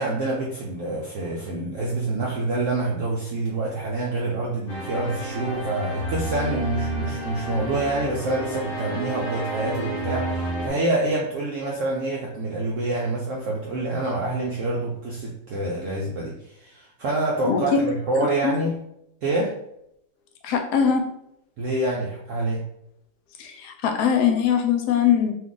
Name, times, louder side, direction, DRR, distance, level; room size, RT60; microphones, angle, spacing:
voice 1, 0.0-18.7 19.2-19.5 21.6-22.6, right 2 dB, 65° right, -3 dB, 0.8 m, -27 dB
sound 1, 4.7-10.7, right 1 dB, 50° left, 0.7 m, -30 dB
voice 2, 17.4-17.8 18.4-18.5 20.4-21.1 23.4-25.3, left 7 dB, 75° left, 5 dB, 1.1 m, -21 dB
2.8 x 2.4 x 3.7 m, 0.76 s
omnidirectional pair, 1.8 m